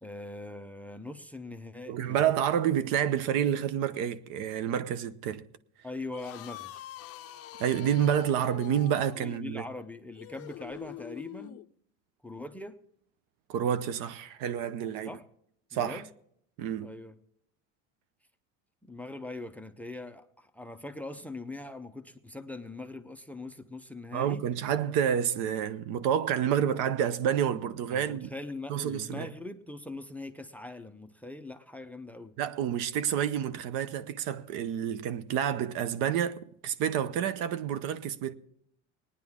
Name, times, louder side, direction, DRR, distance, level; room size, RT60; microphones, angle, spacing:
voice 1, 0.0-2.3 5.8-6.7 9.2-11.6 12.2-12.8 15.0-15.2 15.7-16.1 16.8-17.1 18.8-24.5 27.9-32.4, left 2 dB, 5° left, 0.5 m, -42 dB
voice 2, 1.9-5.4 7.6-9.6 13.5-15.1 15.7-16.0 16.6-16.9 24.1-28.3 28.7-29.3 32.4-38.3, right 9 dB, 70° right, 0.8 m, -29 dB
sound 1, 6.0-11.7, left 14 dB, 45° left, 0.5 m, -45 dB
20.0 x 9.8 x 3.6 m
cardioid pair, 125°, 33 cm